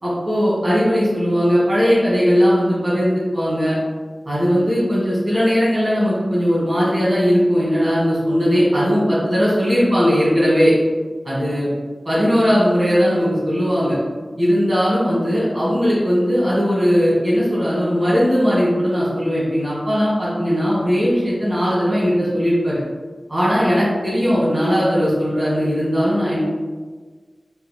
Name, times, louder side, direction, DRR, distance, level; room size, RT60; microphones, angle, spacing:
voice 1, 0.0-3.8 4.2-10.7 11.2-11.7 12.0-14.0 14.4-22.8 23.3-26.4, equal, 45° right, -10 dB, 1.5 m, -18 dB
4.3 x 4.1 x 2.2 m, 1.4 s
wide cardioid pair, 65°, 0 cm